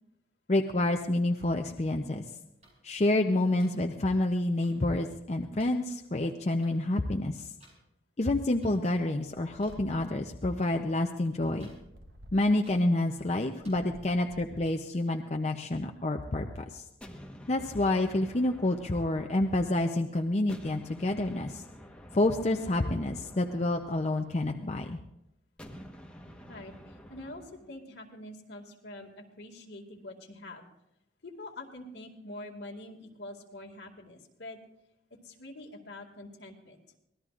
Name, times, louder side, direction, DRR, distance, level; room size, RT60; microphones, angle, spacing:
voice 1, 0.5-2.2 2.8-7.5 8.2-11.7 12.3-16.8 17.5-21.6 22.1-25.0, left 2 dB, 35° left, 3 dB, 0.6 m, -28 dB
sound 1, 2.6-2.7 3.6-3.7 4.6-4.7 5.6-5.7 6.6-6.7 7.6-7.7 8.6-8.7 9.6-9.7 10.6-10.7 11.6-11.8 12.6-12.7 13.6-13.7 14.6-14.7, right 1 dB, 40° right, 5.9 m, -57 dB
sound 2, 9.3-10.4 11.3-12.7 13.5-14.9 15.6-16.8, equal, 70° right, 1.3 m, -54 dB
sound 3, 17.0-20.0 20.5-24.7 25.6-27.7, equal, 5° left, 1.2 m, -50 dB
voice 2, 26.5-30.7 31.2-34.6 35.2-36.8, left 1 dB, 70° left, 2 dB, 2.1 m, -45 dB
24.5 x 18.0 x 2.5 m, 0.86 s
head